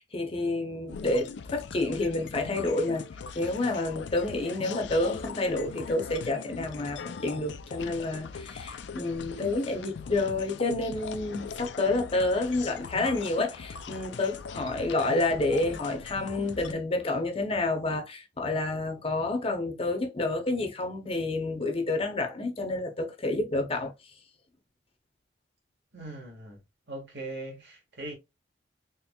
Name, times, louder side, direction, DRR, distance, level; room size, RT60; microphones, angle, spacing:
voice 1, 0.0-3.0 3.3-23.9, left 2 dB, 30° left, 0.8 m, -29 dB
sound 1, 0.9-16.7, left 5 dB, 70° left, 0.4 m, -41 dB
voice 2, 25.9-26.6 26.9-28.1, right 2 dB, 65° right, 1.6 m, -40 dB
4.4 x 3.1 x 2.3 m
head